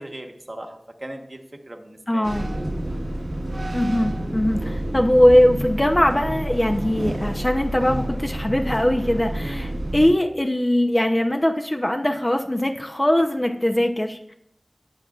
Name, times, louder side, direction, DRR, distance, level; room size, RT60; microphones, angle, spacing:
voice 1, 0.0-2.3 9.4-9.8, right 1 dB, 35° right, 4 dB, 1.1 m, -38 dB
voice 2, 2.1-2.5 3.7-14.3, left 1 dB, 20° left, 4 dB, 0.6 m, -21 dB
sound 1, 2.2-10.1, right 1 dB, 90° right, 1.6 m, -29 dB
18.0 x 5.9 x 2.4 m, 0.72 s
wide cardioid pair, 70°, 0 cm